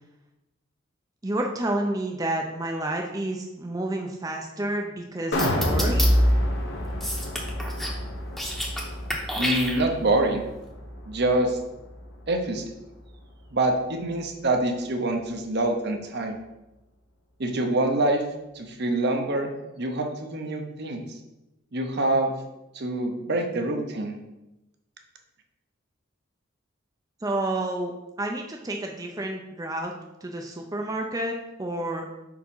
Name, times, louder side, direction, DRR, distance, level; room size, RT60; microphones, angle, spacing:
voice 1, 1.2-6.1 27.2-29.9 30.2-32.1, right 1 dB, 20° right, 1 dB, 0.5 m, -30 dB
sound 1, 5.3-11.5 11.9-12.0, equal, 65° left, 1.1 m, -26 dB
sound 2, 5.4-6.1 7.0-8.0 8.3-8.8 9.1-10.1, equal, ahead, 0.9 m, -29 dB
voice 2, 9.4-10.4 11.0-11.6 12.3-12.6 13.5-16.4 17.4-18.2 18.5-19.5 19.8-21.1 21.7-22.3 22.7-24.2, right 2 dB, 55° right, 4 dB, 0.9 m, -25 dB
4.8 x 4.7 x 5.5 m, 0.96 s
head